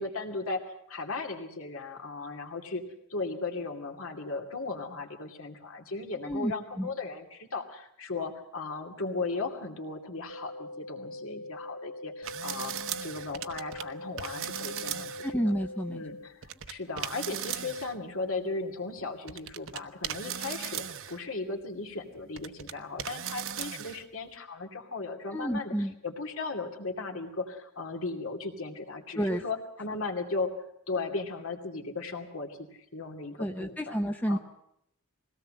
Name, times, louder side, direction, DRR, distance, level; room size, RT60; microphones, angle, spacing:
voice 1, 0.0-2.8 3.1-15.2 15.9-30.5 30.9-32.6 32.9-34.0 34.3-34.4, left 3 dB, 65° left, 4 dB, 2.6 m, -36 dB
voice 2, 6.2-6.9 15.2-16.0 25.3-25.9 29.2-29.4 33.4-34.4, equal, 10° left, 4 dB, 0.7 m, -30 dB
sound 1, 10.3-16.3, left 1 dB, 40° left, 0.8 m, -42 dB
sound 2, 12.2-13.8 14.2-15.3 16.4-17.9 19.0-19.1 19.3-21.2 21.9-22.7 23.0-24.0, right 9 dB, 60° right, 1.0 m, -37 dB
21.5 x 17.5 x 7.6 m, 0.76 s
head